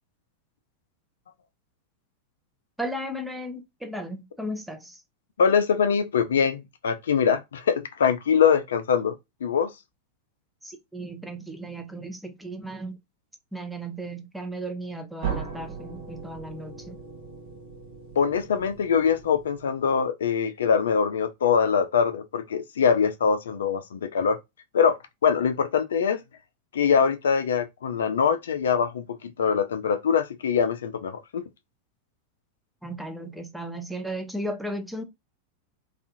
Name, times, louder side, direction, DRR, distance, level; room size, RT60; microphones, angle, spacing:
voice 1, 2.8-5.0 10.6-12.9 13.5-17.0 32.8-35.0, right 1 dB, 5° right, 0.5 m, -35 dB
voice 2, 5.4-9.7 18.2-24.4 24.7-26.2 26.7-31.4, left 6 dB, 65° left, 0.3 m, -23 dB
sound 1, 15.2-20.0, right 7 dB, 50° right, 0.7 m, -38 dB
2.4 x 2.3 x 2.5 m
figure-of-eight pair, 90°, 0 cm